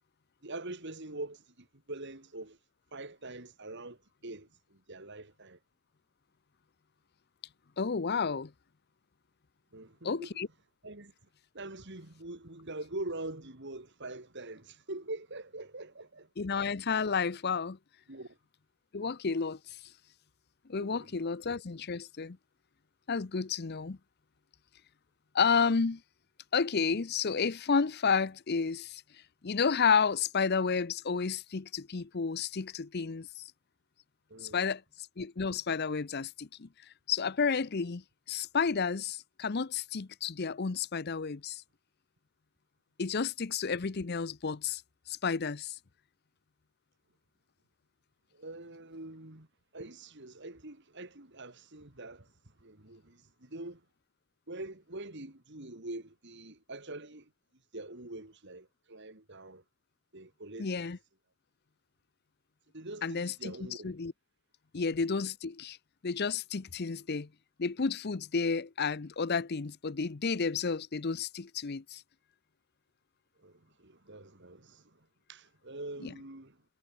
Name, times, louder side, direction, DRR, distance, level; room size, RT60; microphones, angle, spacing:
voice 1, 0.4-2.6 2.9-5.6 9.7-10.4 10.8-11.1 11.5-16.3 18.1-18.4 20.7-21.1 34.3-34.6 48.3-49.5 49.7-52.3 52.6-53.8 54.5-57.3 57.7-59.6 60.1-60.7 62.7-63.9 73.4-75.0 75.3-76.6, right 2 dB, 50° right, 2.7 m, -44 dB
voice 2, 7.8-8.5 10.0-10.5 16.4-17.8 18.9-19.8 20.7-22.4 23.1-24.0 25.3-26.0 26.5-29.0 29.4-33.5 34.4-34.8 35.2-36.7 37.1-38.0 38.3-41.6 43.0-44.8 45.1-45.8 60.6-61.0 63.0-63.5 63.8-64.1 64.7-65.8 66.0-67.3 67.6-72.0 76.0-76.1, left 5 dB, 45° left, 0.6 m, -31 dB
head